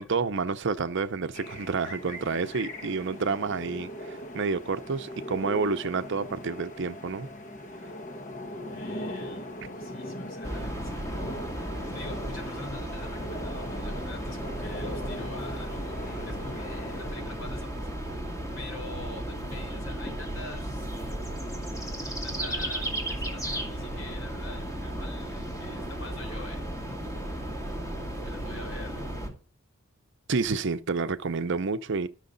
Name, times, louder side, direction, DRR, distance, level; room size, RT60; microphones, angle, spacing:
voice 1, 0.0-7.3 30.3-32.1, right 4 dB, 60° right, 0.6 m, -29 dB
sound 1, 1.3-17.1, equal, 35° left, 1.0 m, -39 dB
voice 2, 8.7-11.4 11.8-17.9 18.6-20.9 22.0-27.1 27.4-27.5 28.2-29.1, left 2 dB, 70° left, 4.1 m, -45 dB
sound 2, 10.4-29.3, right 1 dB, 15° left, 2.6 m, -35 dB
13.5 x 6.4 x 3.9 m
head